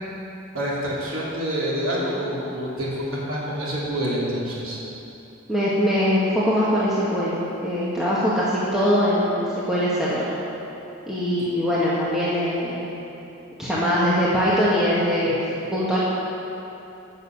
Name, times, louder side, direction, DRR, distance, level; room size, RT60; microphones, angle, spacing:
voice 1, 0.5-4.8, equal, 70° right, -6 dB, 3.3 m, -27 dB
voice 2, 5.5-10.3 11.1-12.9 13.6-16.0, equal, ahead, -9 dB, 1.7 m, -22 dB
13.5 x 6.8 x 7.5 m, 2.9 s
head